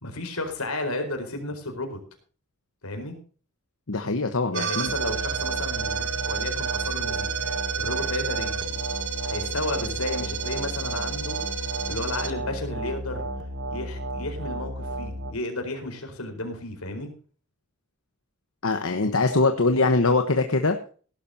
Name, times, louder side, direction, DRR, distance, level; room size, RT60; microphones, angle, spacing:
voice 1, 0.0-2.0 2.8-3.2 4.5-7.3 7.7-8.7 9.2-13.3 13.7-17.1, left 2 dB, 85° left, 5 dB, 4.5 m, -33 dB
voice 2, 3.9-4.9 18.6-20.8, left 3 dB, 70° left, 6 dB, 1.2 m, -22 dB
sound 1, 4.5-15.3, right 4 dB, 55° right, 1.6 m, -30 dB
18.0 x 11.5 x 2.8 m, 0.41 s
head